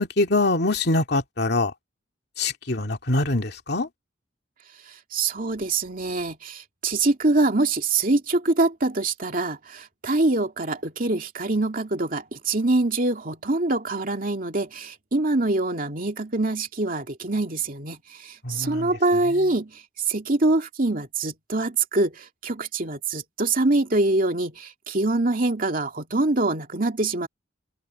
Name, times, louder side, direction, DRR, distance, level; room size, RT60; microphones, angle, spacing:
voice 1, 0.0-1.7 2.4-3.9 18.4-18.9, left 2 dB, 60° left, 2.5 m, -24 dB
voice 2, 5.1-19.8 20.1-27.3, right 2 dB, 45° right, 2.5 m, -24 dB
head